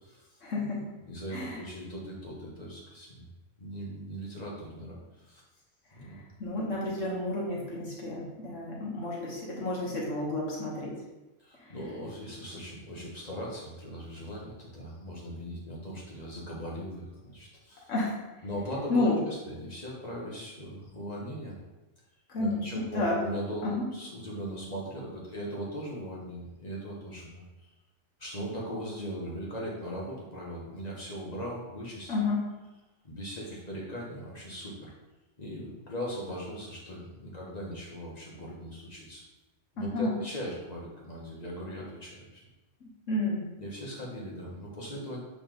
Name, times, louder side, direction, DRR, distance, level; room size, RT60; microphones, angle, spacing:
voice 1, 0.4-0.8 1.3-1.6 6.0-11.0 11.6-11.7 17.9-18.2 18.9-19.2 22.3-22.7 22.9-23.2 23.6-23.9 32.1-32.4 39.8-40.1 42.8-43.5, left 2 dB, 80° left, -4 dB, 1.5 m, -31 dB
voice 2, 1.0-3.3 3.6-5.0 5.2-5.4 5.9-6.2 11.4-17.8 18.4-21.5 22.4-27.4 28.2-32.1 33.0-34.9 35.4-39.2 39.7-42.4 43.6-45.2, equal, 35° left, -4 dB, 1.7 m, -39 dB
6.8 x 4.0 x 3.9 m, 1.1 s
omnidirectional pair, 1.3 m